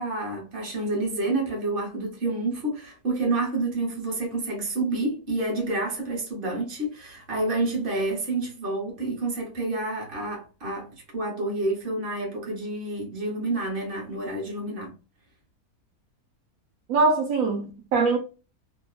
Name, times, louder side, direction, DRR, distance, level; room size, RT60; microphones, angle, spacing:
voice 1, 0.0-14.9, right 2 dB, 40° right, 1.1 m, -29 dB
voice 2, 16.9-18.2, right 3 dB, 75° right, 0.9 m, -22 dB
2.9 x 2.1 x 2.3 m
omnidirectional pair, 1.6 m